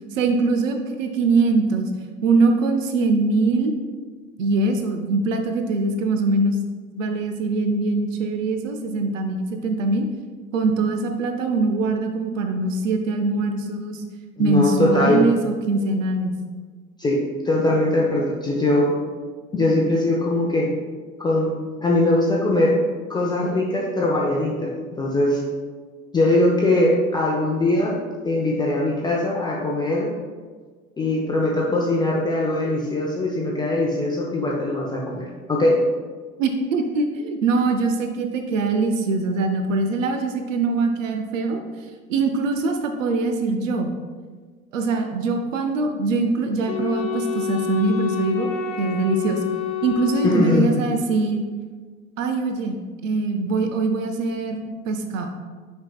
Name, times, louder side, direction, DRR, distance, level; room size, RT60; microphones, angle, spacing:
voice 1, 0.1-1.9 2.2-3.7 4.4-6.6 6.9-10.1 10.5-14.0 14.4-16.4 36.4-41.6 42.1-43.9 44.7-48.5 48.8-49.4 49.8-51.4 52.2-55.3, right 3 dB, 65° right, 6 dB, 0.7 m, -22 dB
voice 2, 14.4-15.3 17.0-19.0 19.5-20.7 21.2-21.5 21.8-22.8 23.1-25.4 26.1-28.0 28.2-30.1 31.0-35.8 50.2-50.7, left 1 dB, 10° left, -4 dB, 0.6 m, -21 dB
Wind instrument woodwind instrument, 46.7-51.1, left 7 dB, 45° left, 0.8 m, -28 dB
8.7 x 5.4 x 2.3 m, 1.5 s
figure-of-eight pair, 85°, 42 cm